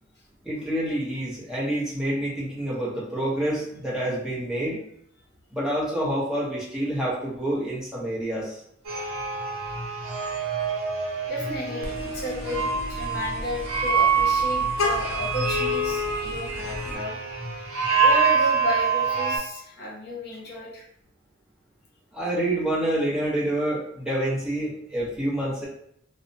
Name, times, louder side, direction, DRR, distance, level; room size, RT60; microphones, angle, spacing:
voice 1, 0.4-4.8 5.5-8.6 22.1-25.7, right 1 dB, 5° right, -7 dB, 0.8 m, -27 dB
sound 1, 8.9-19.4, right 5 dB, 85° right, 0.7 m, -25 dB
voice 2, 11.3-17.2 18.0-20.8, left 1 dB, 55° left, -3 dB, 0.9 m, -32 dB
Vehicle horn car horn honking, 11.8-17.0, left 2 dB, 75° left, 0.5 m, -34 dB
2.7 x 2.0 x 2.6 m, 0.70 s
head